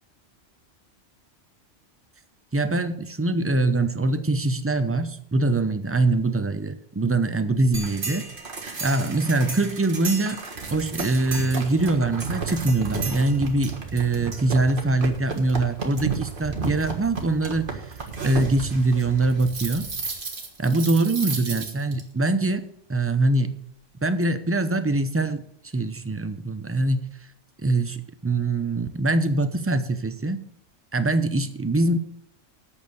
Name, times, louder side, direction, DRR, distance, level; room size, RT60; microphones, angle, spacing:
voice 1, 2.5-8.3 8.8-10.4 10.7-17.7 18.2-19.9 20.6-23.5 24.0-25.4 25.7-27.1 27.6-30.4 30.9-32.0, right 2 dB, 20° right, 10 dB, 0.4 m, -23 dB
sound 1, 7.7-22.0, right 4 dB, 45° right, 1.7 m, -33 dB
8.7 x 6.5 x 8.0 m, 0.66 s
omnidirectional pair, 1.2 m